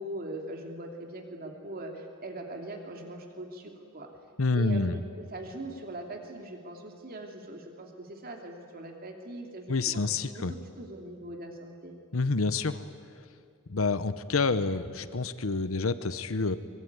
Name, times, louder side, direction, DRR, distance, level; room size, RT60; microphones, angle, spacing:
voice 1, 0.0-4.1 4.5-5.0 5.3-12.0, right 1 dB, 45° right, 3 dB, 2.8 m, -41 dB
voice 2, 4.4-5.0 9.7-10.5 12.1-12.8 13.7-16.6, left 3 dB, 80° left, 13 dB, 0.9 m, -28 dB
24.0 x 23.0 x 9.6 m, 2.3 s
head